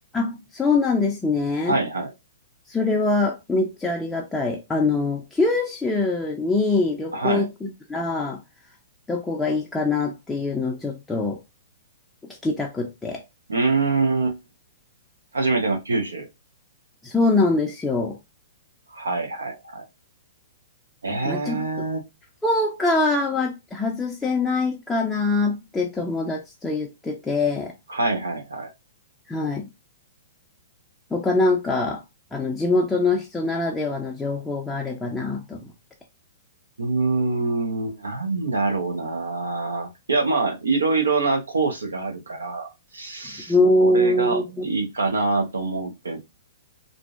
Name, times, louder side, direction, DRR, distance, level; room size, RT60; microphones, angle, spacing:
voice 1, 0.1-1.8 2.7-8.4 9.1-11.4 12.4-13.2 17.0-18.2 21.1-21.7 22.4-27.7 29.3-29.7 31.1-32.0 32.3-35.6 43.5-44.7, left 3 dB, 10° left, 0.4 m, -23 dB
voice 2, 1.7-2.1 7.1-7.5 13.5-14.4 15.3-16.3 18.9-19.9 21.0-22.1 27.9-28.7 36.8-43.5 43.8-46.2, right 3 dB, 90° right, 0.6 m, -25 dB
2.5 x 2.0 x 2.3 m
hypercardioid pair, 125°, 0 cm